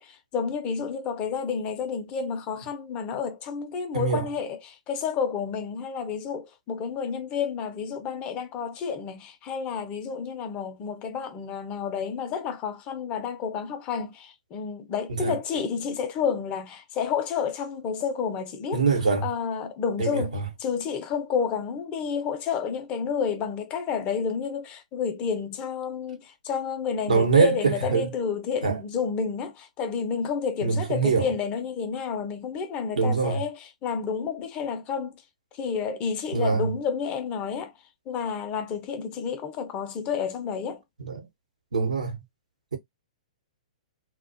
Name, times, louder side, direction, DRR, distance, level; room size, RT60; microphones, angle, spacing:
voice 1, 0.0-18.8 19.2-20.3 20.6-35.2 35.5-37.7 38.1-40.8, left 6 dB, 30° left, 0.5 m, -30 dB
voice 2, 3.9-4.3 15.1-15.4 18.7-19.3 20.0-20.5 27.1-28.1 28.6-28.8 30.6-31.3 33.0-33.4 36.3-36.7 41.0-41.3 41.7-42.2, right 5 dB, 80° right, 0.9 m, -24 dB
2.3 x 2.2 x 2.5 m
figure-of-eight pair, 120°, 4 cm